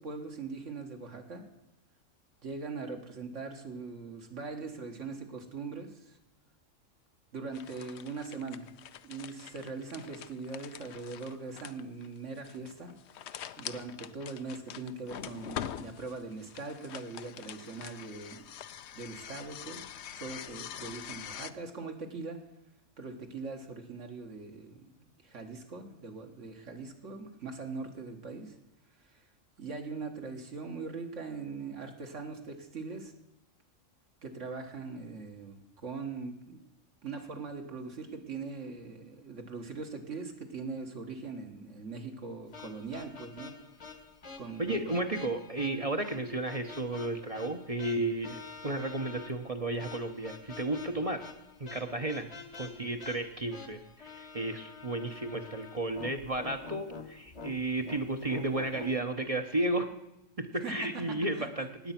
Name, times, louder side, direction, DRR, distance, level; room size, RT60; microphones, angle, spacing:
voice 1, 0.0-1.4 2.4-6.2 7.3-8.7 9.0-12.9 13.6-18.5 18.9-19.9 20.1-22.4 23.0-28.6 29.1-29.2 29.6-33.1 34.2-36.7 37.0-43.5 44.4-44.9 60.6-61.5, right 4 dB, 65° right, 4 dB, 1.9 m, -41 dB
sound 1, 7.5-21.5, left 10 dB, 65° left, 0.8 m, -44 dB
sound 2, 42.5-59.0, left 4 dB, 30° left, 1.1 m, -48 dB
voice 2, 44.6-51.3 51.6-52.3 52.6-59.9 60.4-61.9, right 2 dB, 30° right, 6 dB, 0.9 m, -33 dB
18.5 x 8.1 x 5.9 m, 0.91 s
omnidirectional pair, 1.4 m